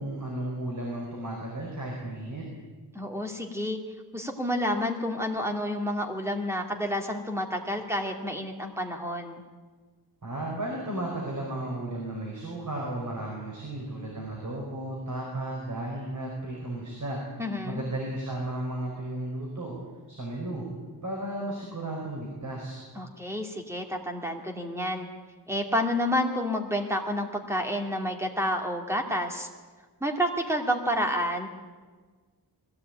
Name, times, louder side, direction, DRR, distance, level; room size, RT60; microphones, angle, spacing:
voice 1, 0.0-2.4 10.2-19.8 20.1-20.6 21.0-22.8, right 1 dB, 45° right, -2 dB, 5.1 m, -34 dB
voice 2, 2.9-3.8 4.1-9.4 17.4-17.8 23.0-25.1 25.5-29.5 30.0-31.5, equal, 5° right, 2 dB, 2.4 m, -29 dB
21.0 x 16.0 x 9.0 m, 1.4 s
wide cardioid pair, 155°, 40 cm